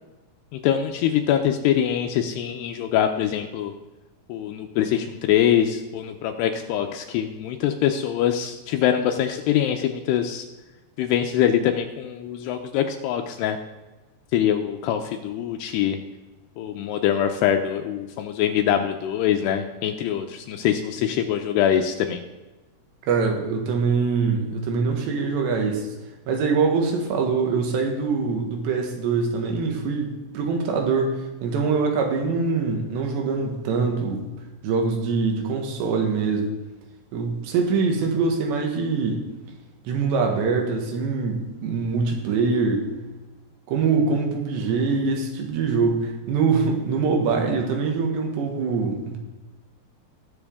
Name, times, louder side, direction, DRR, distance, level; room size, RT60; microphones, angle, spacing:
voice 1, 0.5-3.7 4.3-10.5 11.0-13.6 14.3-16.0 16.6-22.2, left 10 dB, 80° left, 5 dB, 2.6 m, -23 dB
voice 2, 23.1-25.9 26.3-34.2 34.6-36.5 37.1-39.3 39.9-42.9 43.7-49.2, right 4 dB, 85° right, 2 dB, 3.8 m, -23 dB
19.5 x 7.4 x 3.6 m, 1.1 s
omnidirectional pair, 4.9 m